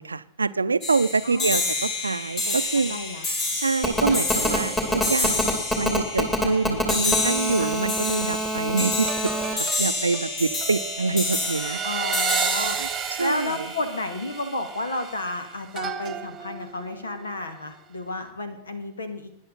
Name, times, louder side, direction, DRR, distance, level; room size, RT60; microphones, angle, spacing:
voice 1, 0.0-3.0 3.5-5.5 5.8-11.8 12.8-12.9 13.2-13.7, right 4 dB, 80° right, 15 dB, 0.6 m, -26 dB
sound 1, 0.8-14.3, left 3 dB, 40° left, 5.5 m, -29 dB
voice 2, 1.2-1.6 2.5-2.6 2.9-3.3 7.6-7.7 11.8-12.8 13.2-19.3, left 2 dB, 75° left, 9 dB, 2.1 m, -31 dB
Telephone, 3.8-9.5, equal, 15° left, 3.0 m, -26 dB
sound 2, 4.1-7.7 9.1-17.6 18.0-18.3, right 8 dB, 20° right, 1.3 m, -34 dB
19.5 x 10.5 x 4.1 m, 0.73 s
figure-of-eight pair, 90°, 0 cm